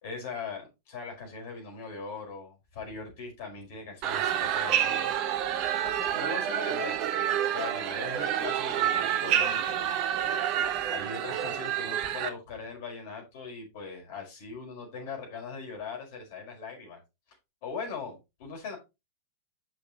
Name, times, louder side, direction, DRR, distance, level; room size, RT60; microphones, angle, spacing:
voice 1, 0.0-5.1 5.8-10.0 10.9-17.0 17.6-18.8, left 4 dB, 50° left, 1 dB, 5.0 m, -40 dB
sound 1, 4.0-12.3, right 10 dB, 45° right, 1.2 m, -28 dB
10.5 x 6.2 x 3.1 m, 0.25 s
figure-of-eight pair, 90°, 0 cm